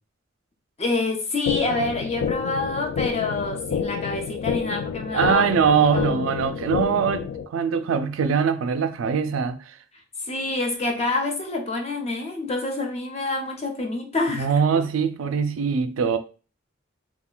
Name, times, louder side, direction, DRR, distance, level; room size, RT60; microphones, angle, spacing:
voice 1, 0.8-5.5 5.9-6.3 10.2-14.5, left 2 dB, 30° left, 0.6 m, -27 dB
sound 1, 1.5-7.5, left 7 dB, 90° left, 0.3 m, -29 dB
voice 2, 5.1-9.7 14.4-16.2, right 6 dB, 85° right, 0.4 m, -22 dB
2.4 x 2.1 x 3.7 m
head